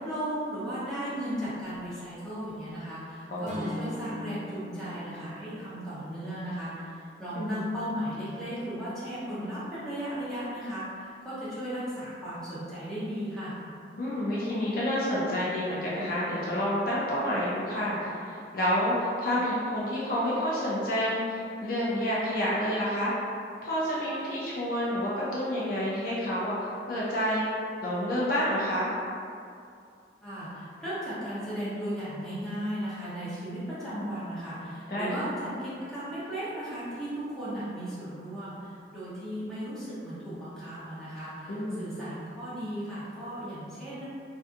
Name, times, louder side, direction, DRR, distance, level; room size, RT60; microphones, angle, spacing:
voice 1, 0.0-13.6 30.2-44.0, equal, 5° left, -12 dB, 0.7 m, -36 dB
voice 2, 3.3-3.7 7.3-7.6 14.0-23.2 23.6-27.5 27.8-28.9 34.9-35.1 41.5-41.9, equal, 50° left, -7 dB, 0.4 m, -29 dB
Acoustic guitar / Strum, 3.4-7.6, equal, 40° right, 0.3 m, -42 dB
2.5 x 2.5 x 2.5 m, 2.4 s
head